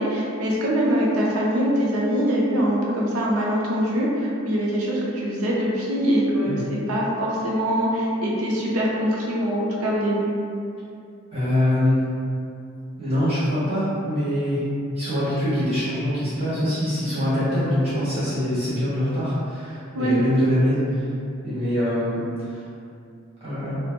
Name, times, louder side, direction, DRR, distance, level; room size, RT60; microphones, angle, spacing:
voice 1, 0.0-10.3 19.9-20.1, equal, 90° right, -4 dB, 0.5 m, -23 dB
voice 2, 11.3-12.0 13.0-14.6 14.9-21.1 21.4-22.6 23.4-23.8, left 1 dB, 30° right, -12 dB, 0.6 m, -23 dB
2.1 x 2.1 x 2.8 m, 2.5 s
head